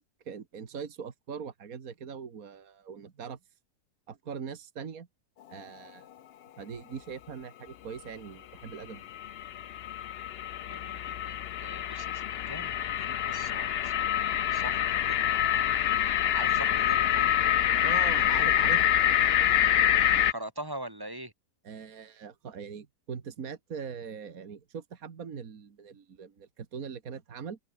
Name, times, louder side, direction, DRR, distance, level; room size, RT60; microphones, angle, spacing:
voice 1, 0.0-3.4 4.1-5.1 5.5-6.1 6.6-9.1 17.8-18.8 21.6-27.6, right 6 dB, 60° right, 2.1 m, -41 dB
sound 1, 8.7-20.3, left 11 dB, 65° left, 0.6 m, -26 dB
voice 2, 10.6-15.8 16.3-17.4 20.3-21.3, right 1 dB, 15° right, 2.4 m, -43 dB
open air
omnidirectional pair, 1.7 m